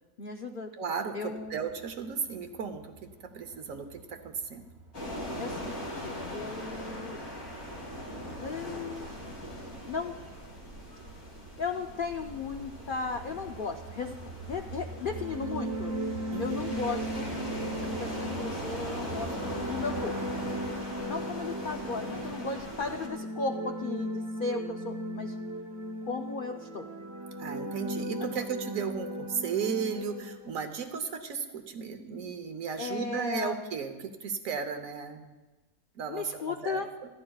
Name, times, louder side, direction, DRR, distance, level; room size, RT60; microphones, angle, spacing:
voice 1, 0.2-0.7 1.1-1.6 5.4-7.2 8.4-9.1 9.9-10.2 11.6-14.2 14.5-15.9 16.4-17.3 17.8-20.2 21.1-25.3 26.0-26.9 28.2-28.3 32.8-33.6 36.1-36.9, left 4 dB, 50° left, 4 dB, 0.6 m, -36 dB
voice 2, 0.8-3.1 3.3-4.7 16.3-16.8 27.4-35.2 35.9-36.8, right 6 dB, 70° right, 7 dB, 1.4 m, -35 dB
sound 1, 1.4-20.7, right 3 dB, 50° right, 1.3 m, -46 dB
sound 2, 4.9-23.1, left 1 dB, 85° left, 3.4 m, -40 dB
sound 3, 15.0-30.7, right 1 dB, 20° right, 0.9 m, -37 dB
28.0 x 11.0 x 2.4 m, 1.2 s
omnidirectional pair, 1.5 m